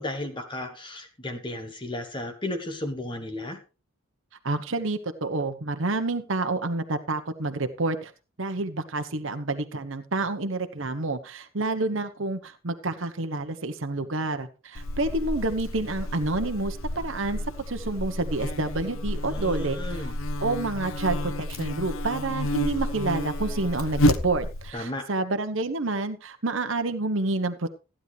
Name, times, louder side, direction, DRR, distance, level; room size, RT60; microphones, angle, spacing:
voice 1, 0.0-3.6 19.3-20.2 24.7-25.1, left 1 dB, 20° left, 5 dB, 1.2 m, -34 dB
voice 2, 4.4-8.1 8.4-17.4 17.7-20.1 20.4-27.7, right 2 dB, 65° right, 8 dB, 1.1 m, -29 dB
Buzz, 14.7-24.7, left 1 dB, 70° left, 0.8 m, -30 dB
15.0 x 10.0 x 3.3 m, 0.31 s
head